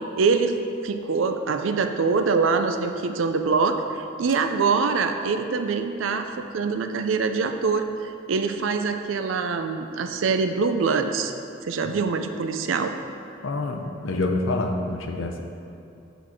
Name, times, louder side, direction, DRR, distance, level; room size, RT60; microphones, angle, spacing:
voice 1, 0.2-0.6 0.8-11.3 11.6-12.9, right 4 dB, 80° right, 7 dB, 0.4 m, -24 dB
voice 2, 13.4-15.4, left 2 dB, 80° left, 3 dB, 0.6 m, -27 dB
7.2 x 4.0 x 4.4 m, 2.7 s
head